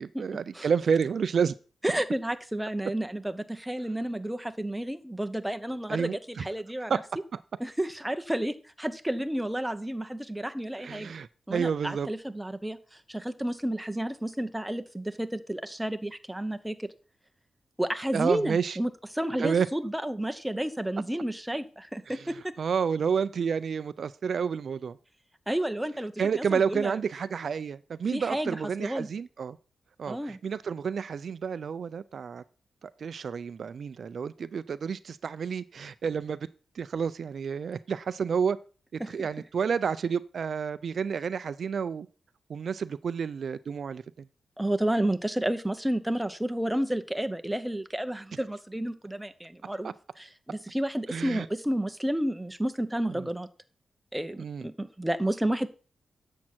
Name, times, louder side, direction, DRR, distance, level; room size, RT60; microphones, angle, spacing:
voice 1, 0.0-1.5 5.9-6.1 6.9-7.0 10.8-12.1 18.1-18.8 19.4-19.7 22.1-25.0 26.2-29.6 30.0-32.4 32.8-36.4 36.8-38.6 39.1-42.1 42.5-44.3 49.8-49.9 51.1-51.5 53.1-53.3 54.4-54.7, right 6 dB, 60° right, 0.4 m, -30 dB
voice 2, 1.8-6.9 7.6-11.1 11.5-16.9 17.8-22.5 25.5-27.0 28.1-29.1 30.1-30.4 39.0-39.3 44.6-53.5 54.1-55.7, right 1 dB, 5° right, 0.8 m, -31 dB
10.5 x 7.4 x 4.4 m
wide cardioid pair, 110°, 0 cm